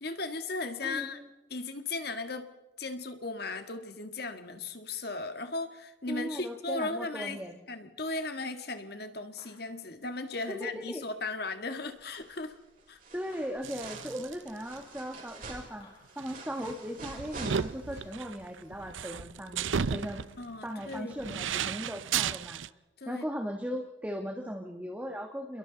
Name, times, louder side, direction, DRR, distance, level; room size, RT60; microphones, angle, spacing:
voice 1, 0.0-1.2 1.5-2.5 2.8-7.4 7.7-12.5 12.9-13.0 20.4-21.1 23.0-23.2, left 3 dB, 55° left, 8 dB, 1.7 m, -36 dB
voice 2, 0.8-1.3 6.1-7.6 10.5-11.0 13.1-20.3 20.6-22.6 23.0-25.6, equal, 10° right, 2 dB, 1.6 m, -38 dB
sound 1, 9.4-9.9 11.5-11.6 13.3-14.0 15.8-16.5 17.9-18.5 20.0-20.6, left 3 dB, 30° left, 5.9 m, -61 dB
sound 2, 12.0-12.5 12.8-18.1 18.4-18.5, right 3 dB, 45° right, 5.7 m, -47 dB
sound 3, 13.6-14.5 14.8-14.9 16.2-22.7, right 7 dB, 80° right, 0.6 m, -34 dB
29.5 x 22.0 x 4.0 m, 1.0 s
head